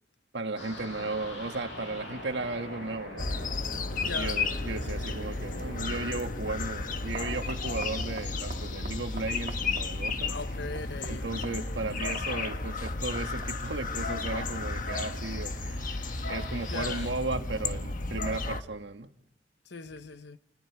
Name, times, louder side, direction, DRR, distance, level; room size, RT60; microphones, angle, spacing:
voice 1, 0.3-3.5 4.0-10.4 11.1-19.1, right 3 dB, 70° right, 1.7 m, -35 dB
sound 1, 0.6-17.1, left 1 dB, 85° left, 7.9 m, -45 dB
sound 2, 3.2-18.6, left 3 dB, 50° left, 1.3 m, -33 dB
voice 2, 4.0-4.4 10.3-11.3 16.7-17.1 19.7-20.4, left 3 dB, 65° left, 1.0 m, -39 dB
sound 3, 6.3-13.7, right 3 dB, 45° right, 1.9 m, -49 dB
29.0 x 29.0 x 4.8 m
head